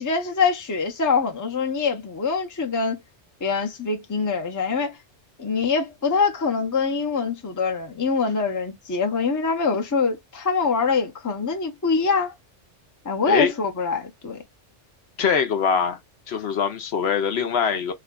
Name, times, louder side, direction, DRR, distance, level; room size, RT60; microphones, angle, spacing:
voice 1, 0.0-3.0 3.4-4.9 5.4-12.3 13.0-14.4, left 5 dB, 20° left, 0.5 m, -24 dB
voice 2, 15.2-16.0 16.3-17.9, left 6 dB, 65° left, 0.8 m, -23 dB
3.3 x 2.2 x 3.6 m
omnidirectional pair, 1.2 m